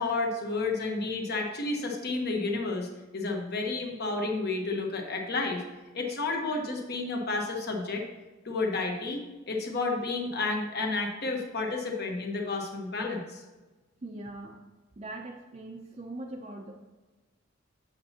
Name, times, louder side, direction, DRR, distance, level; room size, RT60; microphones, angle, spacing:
voice 1, 0.0-5.6 5.9-8.1 8.4-13.4, left 3 dB, 50° left, 1 dB, 1.1 m, -31 dB
voice 2, 14.0-14.6 15.0-16.7, right 2 dB, 30° right, 0 dB, 0.5 m, -41 dB
7.7 x 6.9 x 2.8 m, 1.2 s
head